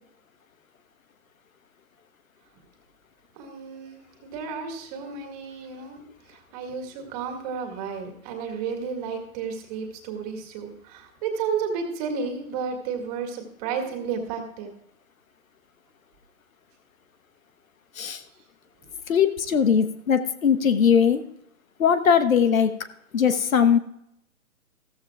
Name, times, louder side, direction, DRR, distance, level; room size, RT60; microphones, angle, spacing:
voice 1, 3.3-6.0 6.3-14.7, right 6 dB, 25° right, 3 dB, 2.0 m, -32 dB
voice 2, 19.1-21.2 21.8-22.7 23.1-23.8, left 7 dB, 70° left, 10 dB, 1.2 m, -20 dB
15.0 x 14.0 x 2.4 m, 0.76 s
hypercardioid pair, 145°, 43 cm